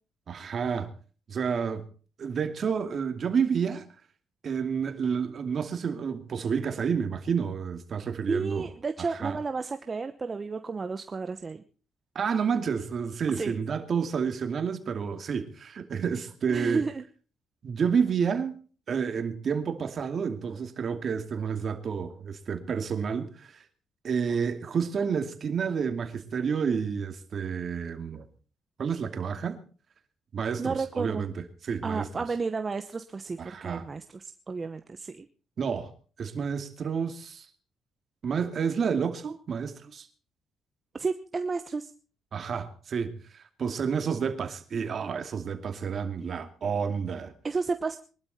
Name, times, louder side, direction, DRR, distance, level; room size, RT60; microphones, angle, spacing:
voice 1, 0.3-0.9 1.3-1.9 2.2-3.9 4.4-8.7 9.0-9.4 12.1-16.8 17.6-18.6 18.9-23.6 24.0-28.2 28.8-29.6 30.3-32.1 33.4-33.9 35.6-35.9 36.2-37.5 38.2-40.1 42.3-47.3, right 6 dB, 50° right, 2.5 m, -30 dB
voice 2, 8.3-11.6 13.3-13.6 16.5-17.0 30.6-31.3 31.8-35.3 40.9-41.9 46.2-46.5 47.4-48.0, right 4 dB, 30° right, 1.0 m, -32 dB
22.5 x 12.0 x 4.3 m
cardioid pair, 90°, 0 cm